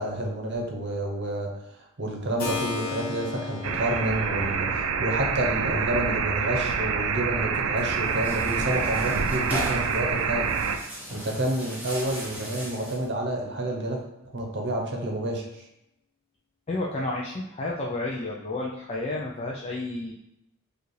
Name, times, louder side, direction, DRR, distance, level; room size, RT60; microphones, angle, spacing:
voice 1, 0.0-1.6 2.0-10.5 11.1-15.6, right 1 dB, 55° right, 1 dB, 0.8 m, -29 dB
Keyboard (musical), 2.4-11.0, left 5 dB, 45° left, 1.0 m, -39 dB
sound 1, 3.6-10.8, right 6 dB, 80° right, 0.4 m, -27 dB
Tearing, 7.8-13.1, right 1 dB, 10° right, 1.0 m, -38 dB
voice 2, 16.7-20.1, left 2 dB, 30° left, -3 dB, 0.4 m, -31 dB
4.7 x 2.5 x 3.2 m, 0.85 s
head